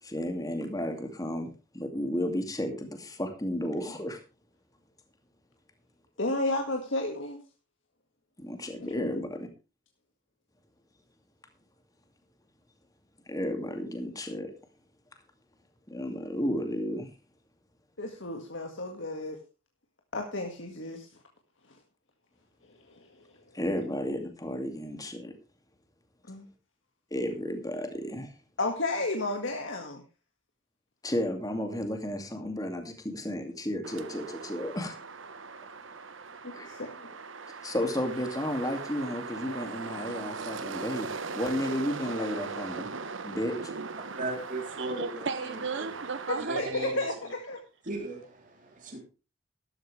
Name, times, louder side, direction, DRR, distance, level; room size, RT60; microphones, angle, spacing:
voice 1, 0.0-4.2 8.4-9.5 13.3-14.5 15.9-17.1 23.5-25.3 27.1-28.3 31.0-34.9 36.5-36.8 37.6-41.1 41.4-42.9 43.2-43.7, left 1 dB, 20° left, 2.4 m, -33 dB
voice 2, 6.2-7.4 9.0-9.1 18.0-19.4 20.1-21.1 26.3-26.5 28.6-30.0 36.4-37.1 46.3-47.6, left 2 dB, 75° left, 2.0 m, -32 dB
sound 1, 33.8-46.3, right 4 dB, 85° right, 1.3 m, -39 dB
voice 3, 44.2-45.0 45.8-45.9 46.4-47.0 47.9-49.0, right 2 dB, 40° right, 3.5 m, -36 dB
voice 4, 44.7-46.9, right 4 dB, 65° right, 0.8 m, -35 dB
13.0 x 12.5 x 3.4 m
head